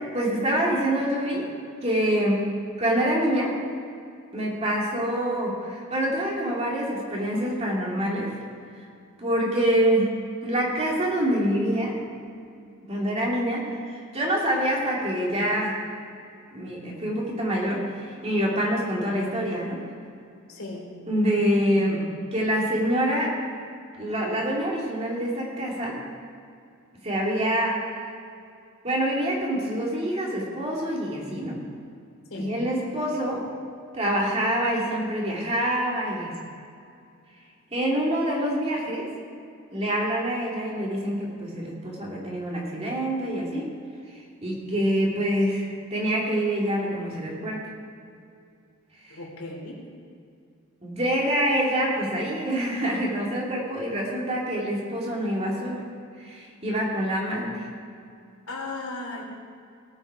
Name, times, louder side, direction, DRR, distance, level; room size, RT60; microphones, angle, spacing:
voice 1, 0.1-1.5 1.8-2.5 2.8-3.6 4.3-8.3 9.2-12.0 12.9-15.8 16.5-19.8 21.1-23.4 24.0-26.0 27.0-28.0 28.8-31.6 32.3-33.4 33.9-36.3 37.7-39.1 39.7-43.7 44.1-47.7 49.0-49.1 50.8-55.9 56.2-57.6, equal, 30° right, -3 dB, 2.4 m, -26 dB
voice 2, 20.5-20.9 32.3-32.5 49.1-49.8 58.5-59.2, left 2 dB, 80° left, -2 dB, 3.1 m, -36 dB
18.0 x 7.3 x 4.9 m, 2.4 s
head